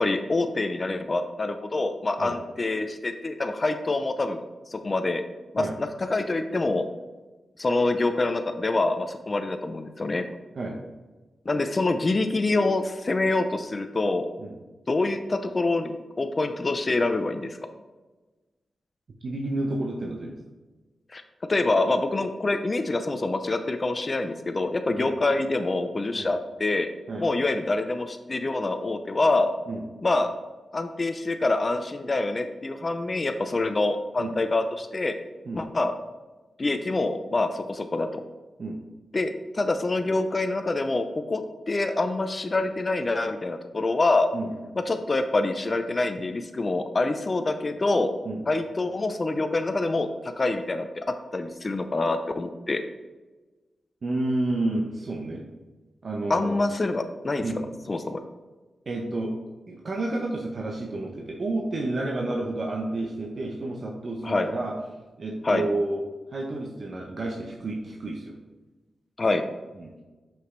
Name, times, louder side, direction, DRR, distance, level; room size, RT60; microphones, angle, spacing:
voice 1, 0.0-4.4 4.7-5.2 5.5-6.8 7.6-10.3 11.5-14.3 14.9-17.6 21.1-21.2 21.5-26.9 27.2-29.5 30.0-30.3 30.7-35.1 35.5-35.9 36.6-38.2 39.1-44.3 44.9-48.1 48.5-51.0 51.3-52.8 56.3-57.4 57.9-58.2 64.2-64.5 65.4-65.7 69.2-69.4, left 2 dB, 35° left, 7 dB, 0.5 m, -26 dB
voice 2, 19.2-20.4 25.0-25.1 26.2-26.3 27.1-27.2 29.7-29.8 34.2-34.3 35.5-35.6 38.6-38.8 44.3-44.5 48.2-48.4 54.0-55.4 56.0-56.5 57.4-57.6 58.9-59.3 59.7-64.7 65.2-66.0 66.3-68.3 69.8-70.0, right 2 dB, 55° right, 0 dB, 0.8 m, -30 dB
6.0 x 5.5 x 3.2 m, 1.2 s
cardioid pair, 75°, 0 cm